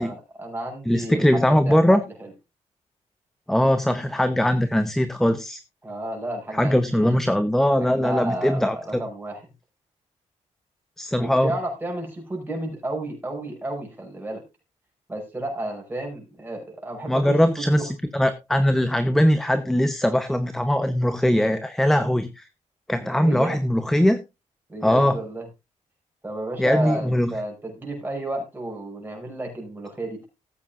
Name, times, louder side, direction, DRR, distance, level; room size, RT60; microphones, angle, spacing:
voice 1, 0.0-2.3 5.8-7.2 7.8-9.4 11.2-14.4 15.1-17.9 23.0-23.6 24.7-25.5 26.2-30.3, right 1 dB, 15° right, 1 dB, 6.3 m, -32 dB
voice 2, 0.9-2.0 3.5-5.6 6.5-9.0 11.0-11.5 17.1-22.4 22.9-24.2 24.8-25.2 26.6-27.3, equal, 5° left, 11 dB, 0.9 m, -21 dB
18.5 x 8.6 x 2.5 m, 0.24 s
cardioid pair, 110°, 13 cm